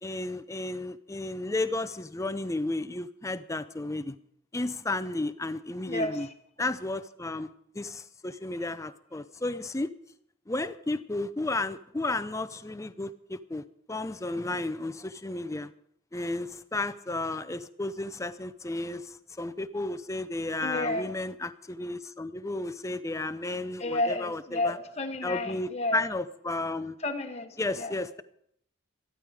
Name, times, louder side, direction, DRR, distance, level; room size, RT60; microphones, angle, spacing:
voice 1, 0.0-4.1 4.5-6.3 6.6-9.9 10.5-13.6 13.9-15.7 16.1-24.8 25.2-26.9 27.6-28.2, left 2 dB, 15° left, 13 dB, 0.5 m, -33 dB
voice 2, 5.9-6.3 20.6-21.1 23.8-26.1 27.0-27.9, left 2 dB, 30° left, 5 dB, 1.1 m, -31 dB
14.0 x 12.5 x 4.9 m, 0.72 s
head